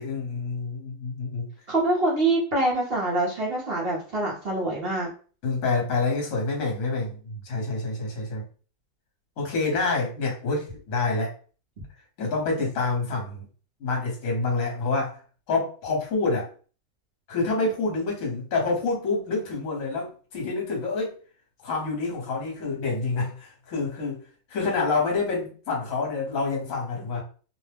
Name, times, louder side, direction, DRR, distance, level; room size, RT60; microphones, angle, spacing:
voice 1, 0.0-1.5 5.4-8.4 9.4-11.3 12.2-13.4 13.8-15.2 15.5-16.5 17.3-21.1 21.6-24.2 24.5-27.2, left 3 dB, 55° left, -1 dB, 1.3 m, -27 dB
voice 2, 1.7-5.1, right 2 dB, 45° right, -4 dB, 0.8 m, -25 dB
2.9 x 2.1 x 3.3 m, 0.39 s
omnidirectional pair, 1.8 m